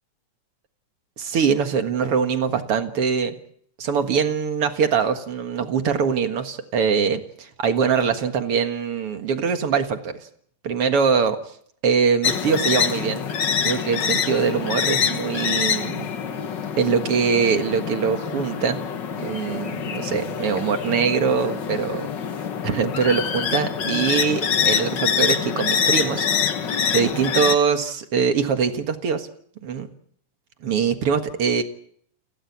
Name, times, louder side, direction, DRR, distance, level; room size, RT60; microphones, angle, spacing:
voice 1, 1.2-3.4 3.8-10.3 10.6-11.4 11.8-13.3 13.6-16.1 16.8-18.8 19.2-22.1 22.6-26.3 26.7-29.3 29.6-29.9 30.6-31.6, right 6 dB, 50° right, 7 dB, 2.2 m, -23 dB
sound 1, 12.2-27.6, left 7 dB, 55° left, 1.2 m, -25 dB
30.0 x 14.0 x 8.5 m, 0.64 s
omnidirectional pair, 3.9 m